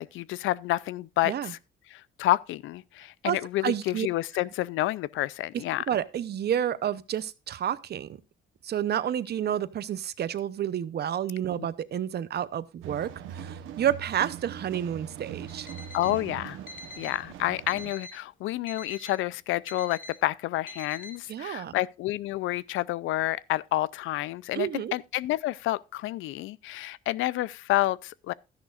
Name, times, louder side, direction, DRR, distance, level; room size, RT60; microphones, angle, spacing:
voice 1, 0.0-1.6 1.9-5.8 15.9-16.6 17.0-28.3, left 16 dB, 85° left, 0.4 m, -29 dB
voice 2, 3.6-4.1 5.9-8.2 8.6-15.7 21.3-21.7 24.5-24.9, right 10 dB, 55° right, 0.7 m, -30 dB
sound 1, 12.8-17.9, right 9 dB, 90° right, 1.0 m, -41 dB
Alarm, 15.5-16.2 16.7-17.2 17.7-18.2 18.7-19.2 19.7-20.2 20.7-21.2, left 2 dB, 45° left, 1.7 m, -44 dB
12.5 x 10.5 x 2.4 m
cardioid pair, 90°, 20 cm